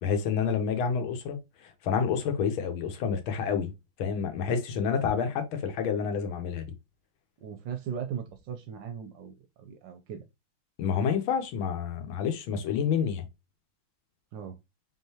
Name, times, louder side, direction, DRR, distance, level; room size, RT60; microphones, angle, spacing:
voice 1, 0.0-3.7 4.0-6.7 10.8-13.3, left 6 dB, 80° left, 1.6 m, -29 dB
voice 2, 7.4-10.3 14.3-14.6, right 8 dB, 75° right, 1.1 m, -38 dB
3.7 x 3.6 x 2.7 m
omnidirectional pair, 2.3 m